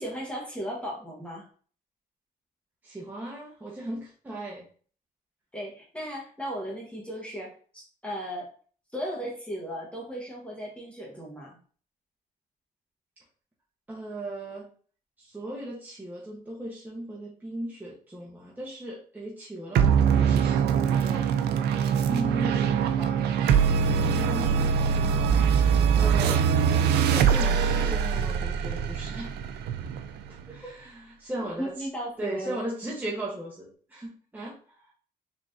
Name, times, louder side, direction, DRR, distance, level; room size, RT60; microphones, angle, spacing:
voice 1, 0.0-1.4 5.5-8.5 8.9-11.6 31.6-32.6, equal, 5° left, -3 dB, 1.2 m, -36 dB
voice 2, 2.8-4.7 13.9-14.7 15.2-21.3 22.1-23.3 23.8-25.3 26.0-26.5 27.0-29.3 30.3-31.9 32.2-34.6, right 1 dB, 10° right, -4 dB, 1.0 m, -37 dB
sound 1, 19.7-30.5, right 7 dB, 90° right, 0.4 m, -23 dB
3.9 x 3.3 x 2.6 m, 0.43 s
cardioid pair, 100°, 16 cm